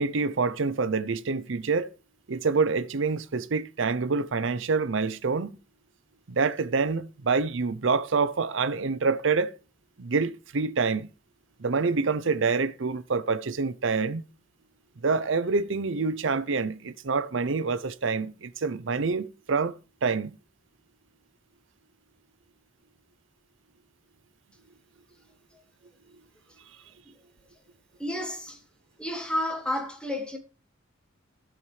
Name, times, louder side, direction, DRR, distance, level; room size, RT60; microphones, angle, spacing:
voice 1, 0.0-1.9 2.3-5.5 6.3-9.6 10.0-11.1 11.6-14.2 15.0-19.7 20.0-20.4, right 4 dB, 60° right, 0.6 m, -26 dB
voice 2, 28.0-28.6 29.0-30.4, left 1 dB, 5° left, 1.6 m, -31 dB
12.5 x 7.1 x 3.3 m
head